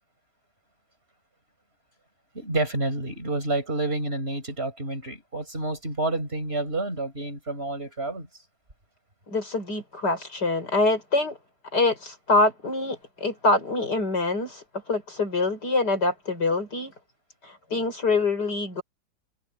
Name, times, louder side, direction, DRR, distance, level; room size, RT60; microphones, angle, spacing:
voice 1, 2.3-8.3, right 2 dB, 30° right, 6.1 m, -29 dB
voice 2, 9.3-11.4 11.7-16.9 17.4-18.8, left 3 dB, 60° left, 6.4 m, -25 dB
omnidirectional pair, 2.0 m